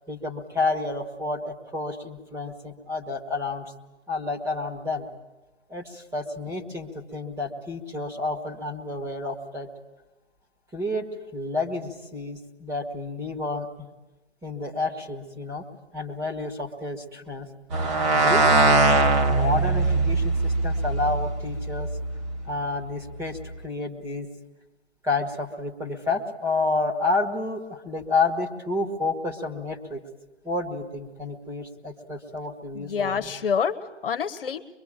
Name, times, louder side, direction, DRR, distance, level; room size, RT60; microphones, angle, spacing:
voice 1, 0.1-3.7 4.1-5.1 5.7-9.7 10.7-13.9 14.4-15.7 15.9-17.5 18.1-21.9 22.5-24.3 25.0-30.0 30.4-33.3, left 3 dB, 5° right, 1 dB, 1.8 m, -30 dB
sound 1, 17.7-22.4, right 3 dB, 25° right, 1.8 m, -22 dB
voice 2, 32.7-34.8, left 7 dB, 50° left, 7 dB, 1.5 m, -27 dB
23.5 x 23.5 x 9.0 m, 1.0 s
figure-of-eight pair, 140°, 35 cm